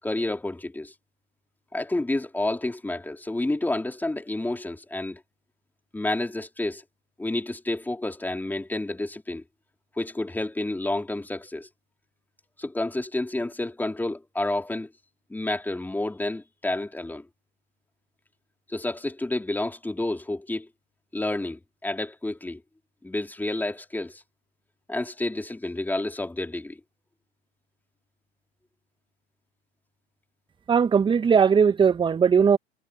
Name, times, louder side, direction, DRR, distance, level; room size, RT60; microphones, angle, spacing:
voice 1, 0.0-0.9 1.7-5.2 5.9-6.8 7.2-9.4 9.9-11.7 12.6-14.9 15.3-17.3 18.7-20.7 21.1-22.6 23.0-24.2 24.9-26.8, left 2 dB, 5° left, 3.4 m, -30 dB
voice 2, 30.7-32.6, right 6 dB, 15° right, 1.2 m, -19 dB
figure-of-eight pair, 90°, 32 cm